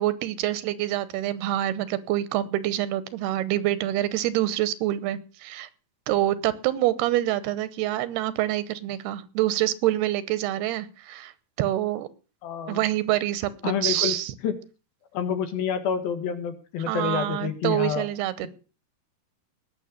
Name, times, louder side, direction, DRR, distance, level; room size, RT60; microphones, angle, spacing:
voice 1, 0.0-5.7 6.1-11.3 11.6-12.1 12.7-14.3 16.9-18.5, right 14 dB, 85° right, 16 dB, 3.0 m, -26 dB
voice 2, 12.4-12.8 13.6-14.2 14.4-14.5 15.1-18.1, left 7 dB, 70° left, 9 dB, 3.3 m, -28 dB
19.0 x 7.3 x 6.6 m, 0.36 s
omnidirectional pair, 4.5 m